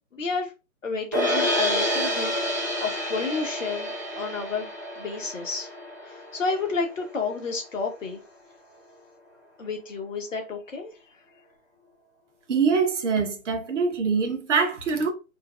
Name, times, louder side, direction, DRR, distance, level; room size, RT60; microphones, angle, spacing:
voice 1, 0.1-0.5 0.8-4.7 5.0-5.7 6.0-8.2 9.6-10.9, left 4 dB, 65° left, 1.3 m, -31 dB
sound 1, 1.1-7.3, equal, 15° right, 0.4 m, -29 dB
voice 2, 12.5-15.1, right 5 dB, 60° right, 1.0 m, -24 dB
4.5 x 2.1 x 2.4 m
figure-of-eight pair, 145°, 42 cm